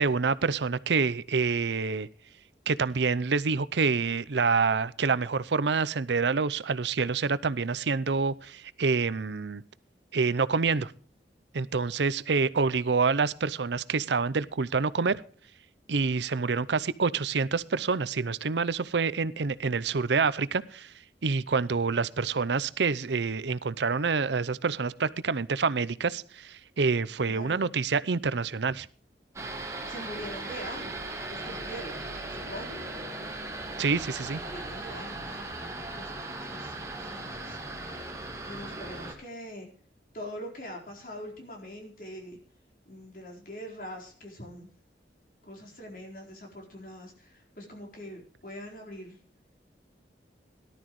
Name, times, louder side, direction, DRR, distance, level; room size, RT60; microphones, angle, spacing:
voice 1, 0.0-2.1 2.7-9.6 10.1-10.9 11.5-15.2 15.9-20.9 21.2-28.9 33.8-34.4, right 4 dB, 80° right, 18 dB, 0.6 m, -27 dB
voice 2, 27.3-27.6 29.9-32.0 32.3-32.8 34.3-38.2 38.4-39.7 40.1-42.4 42.9-44.7 45.4-49.2, equal, 50° left, 1 dB, 4.3 m, -43 dB
sound 1, 29.4-39.1, right 2 dB, 15° right, 2.2 m, -38 dB
18.0 x 12.0 x 3.1 m, 0.44 s
head